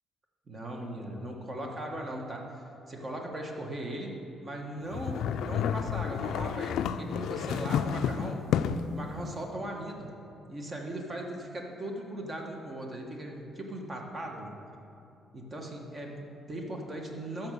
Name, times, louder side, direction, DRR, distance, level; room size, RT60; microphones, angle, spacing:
voice 1, 0.5-8.4 8.9-10.1 10.5-14.5 15.3-17.5, right 1 dB, 35° right, 1 dB, 1.4 m, -38 dB
sound 1, 4.9-9.0, left 8 dB, 80° left, 0.3 m, -30 dB
13.0 x 4.4 x 6.7 m, 2.7 s
cardioid pair, 90°, 0 cm